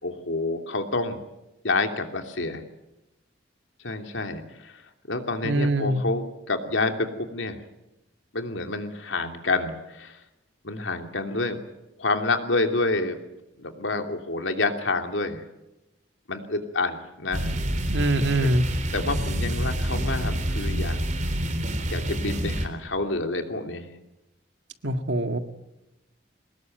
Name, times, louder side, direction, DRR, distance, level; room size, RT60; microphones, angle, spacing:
voice 1, 0.0-1.2 1.6-2.6 3.8-4.8 5.1-7.6 8.3-10.2 10.6-11.6 12.0-13.2 13.6-15.4 16.3-17.5 18.9-21.0 21.9-23.9, left 3 dB, 85° left, 5 dB, 2.9 m, -28 dB
voice 2, 5.4-6.0 17.9-18.6 24.8-25.4, right 1 dB, 75° right, 7 dB, 2.0 m, -23 dB
sound 1, 17.3-22.7, right 1 dB, 40° right, 3.8 m, -27 dB
24.0 x 20.0 x 9.2 m, 0.95 s
head